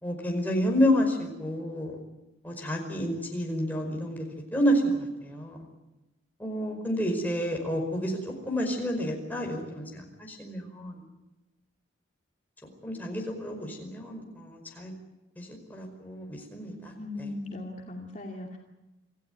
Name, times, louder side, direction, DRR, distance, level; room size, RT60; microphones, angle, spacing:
voice 1, 0.0-1.9 2.4-4.3 4.5-5.7 6.4-8.2 8.5-10.9 12.8-14.9 15.4-16.9, equal, 10° left, 1 dB, 5.2 m, -29 dB
voice 2, 16.8-18.6, left 2 dB, 35° left, 0 dB, 2.5 m, -38 dB
27.5 x 16.0 x 9.6 m, 1.0 s
head